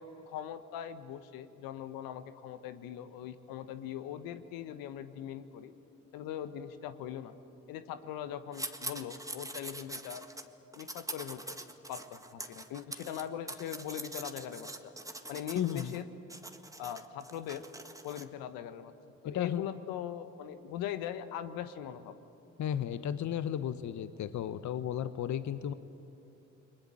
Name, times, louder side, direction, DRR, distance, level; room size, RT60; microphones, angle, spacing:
voice 1, 0.0-5.7 6.1-7.3 7.7-10.2 10.7-11.6 11.9-14.9 15.3-16.0 16.8-17.6 18.0-18.9 19.2-22.2, left 10 dB, 75° left, 11 dB, 1.2 m, -41 dB
sound 1, 8.5-10.4 10.7-16.0 16.3-18.2, right 1 dB, 10° right, 1.8 m, -44 dB
voice 2, 15.5-16.0 19.2-19.6 22.6-25.7, left 10 dB, 55° left, 12 dB, 1.0 m, -34 dB
30.0 x 21.5 x 7.7 m, 2.7 s
hypercardioid pair, 50°, 35 cm